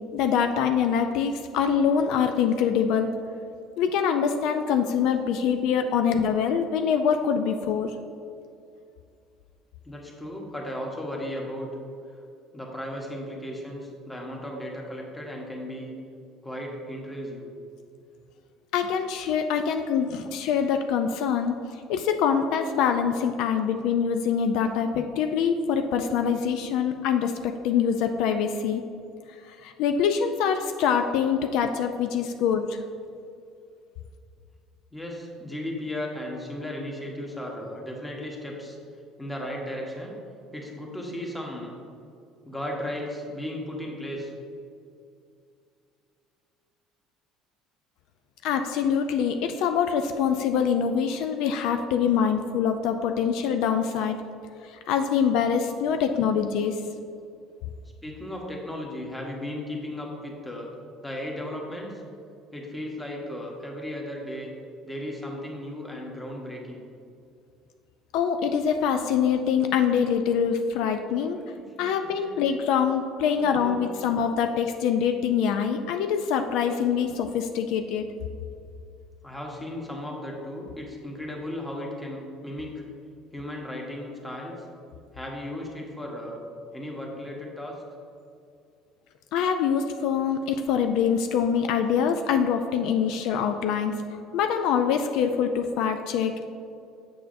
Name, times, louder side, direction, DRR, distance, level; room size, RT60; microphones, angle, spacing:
voice 1, 0.1-3.1 3.8-7.9 18.7-21.6 21.9-28.8 29.4-32.8 48.4-54.2 54.6-56.8 68.1-71.4 71.8-78.1 89.3-96.5, left 7 dB, 75° left, 6 dB, 0.3 m, -24 dB
voice 2, 9.8-11.7 12.1-12.2 12.5-15.9 16.4-17.5 34.9-38.8 39.2-40.2 40.5-41.7 42.4-44.3 58.0-60.7 61.0-62.0 62.5-64.5 64.8-66.8 71.4-72.4 73.4-73.8 79.2-82.7 83.3-84.6 85.1-86.4 86.7-87.8, left 1 dB, 10° left, -1 dB, 1.2 m, -35 dB
6.7 x 6.3 x 2.6 m, 2.4 s
supercardioid pair, 100°, 0 cm